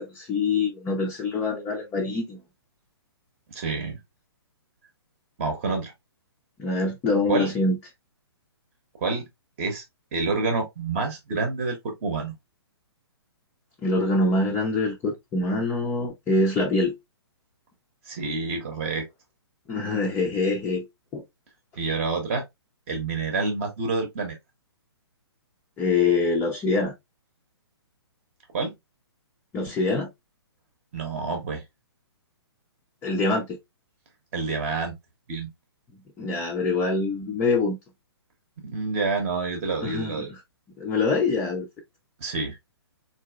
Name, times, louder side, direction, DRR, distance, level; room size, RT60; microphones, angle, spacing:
voice 1, 0.0-2.4 6.6-7.8 13.8-16.9 19.7-20.9 21.1-21.2 25.8-26.9 29.5-30.1 33.0-33.6 36.2-37.8 39.8-40.4 40.8-41.7, left 3 dB, 15° left, 0.5 m, -24 dB
voice 2, 3.5-4.0 5.4-5.9 7.3-7.5 8.9-9.3 9.6-9.8 10.1-12.3 18.1-19.0 21.8-22.4 22.9-24.4 28.5-28.7 30.9-31.6 34.3-35.0 35.3-35.5 38.6-40.3 42.2-42.6, right 3 dB, 30° right, 0.9 m, -28 dB
3.8 x 2.7 x 2.2 m
figure-of-eight pair, 125°, 14 cm